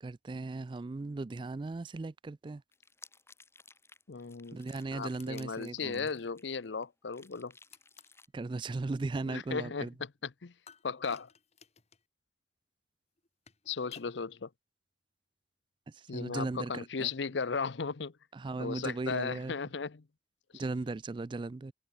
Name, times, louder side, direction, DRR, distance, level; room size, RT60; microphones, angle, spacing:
voice 1, 0.0-2.6 4.5-6.1 8.3-9.9 15.9-17.1 18.3-19.6 20.5-21.7, right 3 dB, 25° right, 0.3 m, -37 dB
sound 1, 2.7-6.8 7.1-8.3, left 4 dB, 15° left, 6.8 m, -58 dB
voice 2, 4.1-4.6 4.9-7.5 9.3-10.5 10.8-11.3 13.7-14.5 16.1-18.1 18.6-20.0 20.5-20.6, left 5 dB, 80° left, 0.7 m, -36 dB
sound 2, 5.1-5.6 7.7-8.2 10.7-12.1 13.2-14.1, left 6 dB, 35° left, 2.5 m, -57 dB
head